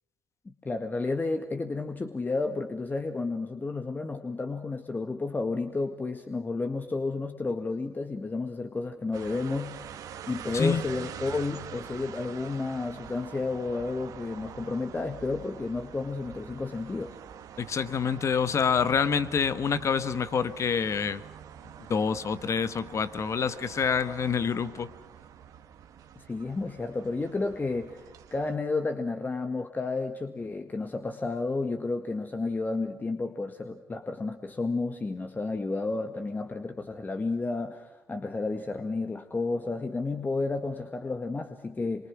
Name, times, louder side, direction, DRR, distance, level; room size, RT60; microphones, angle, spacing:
voice 1, 0.5-10.0 10.3-17.2 26.2-28.0 28.3-42.1, left 3 dB, 30° left, 6 dB, 1.8 m, -31 dB
sound 1, 9.1-28.6, right 9 dB, 65° right, 1.8 m, -45 dB
voice 2, 17.6-21.2 21.9-24.9, left 6 dB, 50° left, 12 dB, 1.5 m, -27 dB
26.5 x 24.0 x 6.2 m, 1.1 s
hypercardioid pair, 55°, 6 cm